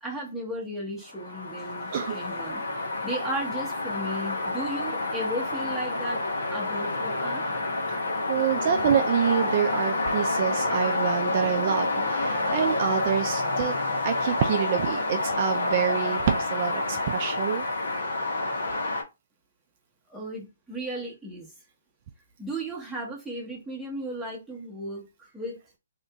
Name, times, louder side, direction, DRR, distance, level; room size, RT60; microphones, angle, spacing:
voice 1, 0.0-2.6 3.0-6.2 6.5-7.4 20.1-21.5 22.4-25.1 25.3-25.6, right 1 dB, ahead, 1.0 m, -35 dB
sound 1, 1.1-19.0, left 2 dB, 75° left, 0.9 m, -28 dB
voice 2, 8.3-13.7 14.0-17.6, right 9 dB, 40° right, 0.4 m, -27 dB
2.9 x 2.5 x 3.4 m
hypercardioid pair, 150°, 0 cm